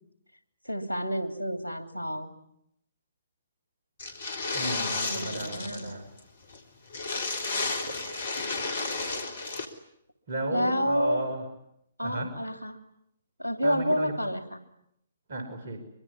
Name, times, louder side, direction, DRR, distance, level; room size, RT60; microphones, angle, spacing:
voice 1, 0.6-2.3 5.1-6.0 10.5-11.2 12.0-12.8 13.4-14.6, equal, 85° right, 8 dB, 3.0 m, -29 dB
sound 1, 4.0-5.9 6.2-6.3 6.5-6.6 6.9-9.7, left 3 dB, 55° left, 3.4 m, -32 dB
voice 2, 4.5-6.1 10.3-11.4 12.0-12.4 13.6-14.1 15.3-15.8, right 2 dB, 55° right, 6 dB, 5.4 m, -34 dB
23.5 x 23.5 x 9.8 m, 0.77 s
figure-of-eight pair, 125°, 0 cm